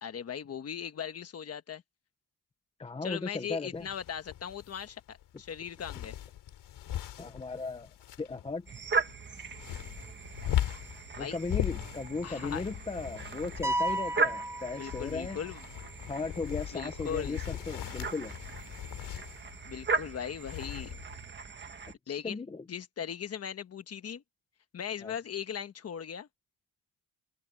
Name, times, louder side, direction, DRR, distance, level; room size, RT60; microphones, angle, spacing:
voice 1, 0.0-1.8 3.0-6.2 11.1-11.4 12.2-12.6 14.8-15.6 16.7-17.4 19.6-20.9 22.1-22.4 22.7-24.2 24.7-26.3, left 8 dB, 35° left, 1.2 m, -38 dB
voice 2, 2.8-3.9 7.2-7.9 8.2-8.7 11.2-15.4 16.1-18.3 22.1-22.6 25.0-25.1, left 3 dB, 15° left, 0.7 m, -36 dB
sound 1, 3.7-21.3, left 12 dB, 80° left, 2.7 m, -39 dB
sound 2, 8.7-21.9, right 4 dB, 25° right, 1.6 m, -38 dB
sound 3, 13.6-15.5, right 1 dB, 5° right, 1.3 m, -33 dB
open air
cardioid pair, 170°, 41 cm